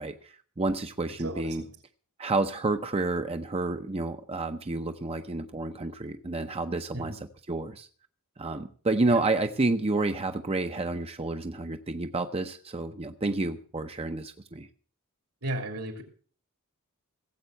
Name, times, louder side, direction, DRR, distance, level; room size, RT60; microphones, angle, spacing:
voice 1, 0.0-1.6 2.2-7.9 8.4-14.7, right 2 dB, 25° right, 7 dB, 0.7 m, -30 dB
voice 2, 1.2-1.7 6.9-7.2 9.1-9.2 15.4-16.0, right 1 dB, 75° right, 5 dB, 3.3 m, -35 dB
17.0 x 8.0 x 6.5 m, 0.43 s
head